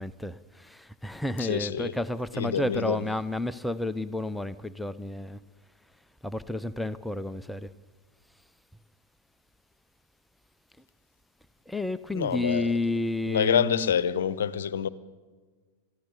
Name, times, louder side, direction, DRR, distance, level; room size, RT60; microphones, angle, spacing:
voice 1, 0.0-5.4 6.2-7.7 11.7-13.9, left 2 dB, 5° left, 0.6 m, -31 dB
voice 2, 1.4-1.9 2.3-3.0 12.1-12.7 13.3-14.9, left 8 dB, 60° left, 0.8 m, -27 dB
22.0 x 14.5 x 8.7 m
figure-of-eight pair, 90°, 0 cm